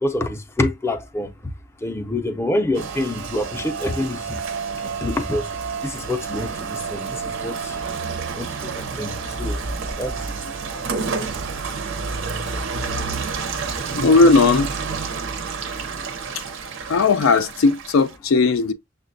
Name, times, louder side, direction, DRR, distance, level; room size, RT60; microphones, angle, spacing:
voice 1, 0.0-1.5 1.8-4.4 4.8-5.5 5.8-8.0 8.4-8.6 9.0-9.1 9.4-9.6 10.0-10.2, left 1 dB, 15° left, 0.5 m, -26 dB
Rain, 2.7-18.2, right 4 dB, 65° right, 0.6 m, -29 dB
voice 2, 13.9-14.7 16.9-18.7, left 3 dB, 80° left, 0.4 m, -16 dB
6.4 x 2.2 x 2.5 m
head